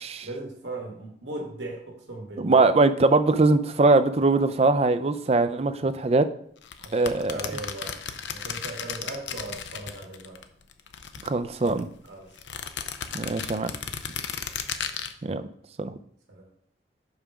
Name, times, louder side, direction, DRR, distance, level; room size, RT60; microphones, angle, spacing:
voice 1, 0.2-2.7 6.8-7.9 8.3-10.4 12.1-12.3 14.1-14.2 16.3-16.4, right 2 dB, 90° right, -1 dB, 1.7 m, -38 dB
voice 2, 2.4-6.3 6.9-7.4 11.2-11.9 13.1-13.7 15.2-15.4 15.8-15.9, right 3 dB, 35° right, 11 dB, 0.4 m, -21 dB
sound 1, 6.6-10.4 10.7-11.8 12.4-15.1, left 7 dB, 90° left, 0.6 m, -34 dB
5.6 x 4.9 x 5.9 m, 0.65 s
head